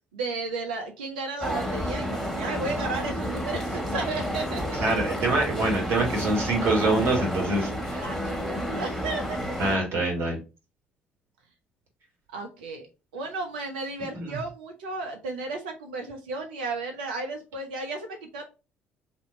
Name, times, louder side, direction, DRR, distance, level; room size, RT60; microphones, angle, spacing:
voice 1, 0.1-4.8 8.0-9.4 12.3-12.9 13.1-18.4, right 3 dB, 80° right, 3 dB, 0.6 m, -34 dB
sound 1, 1.4-9.8, equal, 5° left, 1.7 m, -30 dB
voice 2, 4.8-8.0 9.6-10.4 14.1-14.4, right 2 dB, 55° right, -1 dB, 1.6 m, -25 dB
2.8 x 2.6 x 4.2 m, 0.30 s
hypercardioid pair, 50°, 5 cm